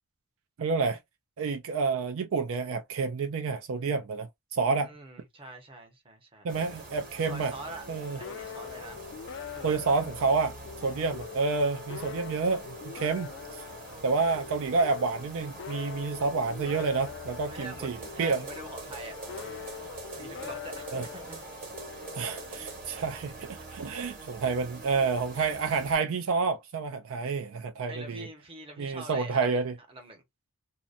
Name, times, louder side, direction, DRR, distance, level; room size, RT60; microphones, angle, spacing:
voice 1, 0.6-1.0 1.4-4.9 6.4-7.5 7.9-8.2 9.6-10.5 10.8-13.6 14.0-18.4 20.9-21.1 22.1-28.3 28.8-29.7, right 4 dB, 65° right, 0.4 m, -29 dB
voice 2, 4.8-6.5 7.2-7.9 8.1-9.0 9.5-9.9 17.5-19.3 20.0-21.7 27.9-29.6 29.9-30.2, right 2 dB, 25° right, 0.8 m, -45 dB
sound 1, 6.5-26.0, right 3 dB, 40° right, 1.4 m, -45 dB
sound 2, 7.9-23.2, left 8 dB, 55° left, 0.3 m, -44 dB
2.8 x 2.1 x 2.4 m
head